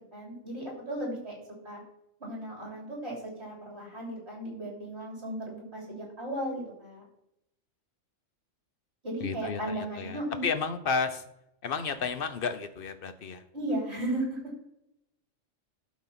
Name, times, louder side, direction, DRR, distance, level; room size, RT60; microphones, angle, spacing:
voice 1, 0.1-1.4 1.6-1.8 2.2-7.1 9.0-10.4 13.5-14.5, right 1 dB, 55° right, -2 dB, 3.5 m, -35 dB
voice 2, 9.2-11.2 11.6-13.4, left 5 dB, 50° left, 10 dB, 0.9 m, -32 dB
11.5 x 4.2 x 5.8 m, 0.83 s
omnidirectional pair, 1.3 m